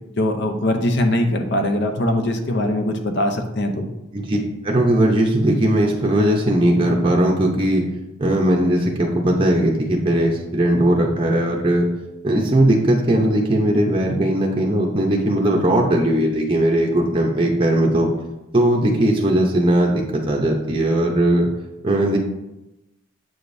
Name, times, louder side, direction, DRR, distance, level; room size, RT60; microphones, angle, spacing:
voice 1, 0.2-3.9, left 1 dB, 55° left, 6 dB, 0.7 m, -21 dB
voice 2, 4.6-7.8 8.2-11.9 12.2-18.1 18.5-21.5 21.8-22.2, right 1 dB, 25° right, -1 dB, 0.7 m, -18 dB
7.7 x 5.0 x 2.6 m, 0.97 s
head